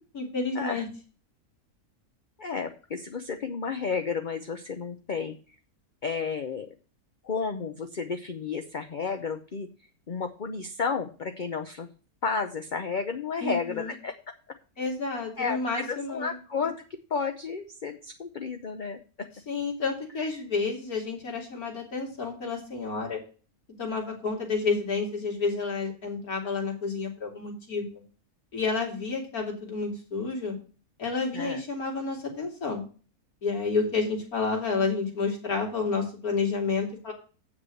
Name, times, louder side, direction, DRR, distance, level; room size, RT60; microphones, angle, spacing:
voice 1, 0.1-0.8 13.4-13.9 14.8-16.3 19.5-23.2 23.8-28.0 28.5-30.5 31.0-32.8 33.4-37.1, left 4 dB, 80° left, -1 dB, 3.4 m, -30 dB
voice 2, 2.4-5.6 6.0-6.7 7.2-9.7 10.1-11.9 12.2-14.1 15.4-19.3 31.3-31.6, left 5 dB, 40° left, 6 dB, 0.8 m, -32 dB
8.0 x 6.0 x 7.7 m, 0.37 s
omnidirectional pair, 1.5 m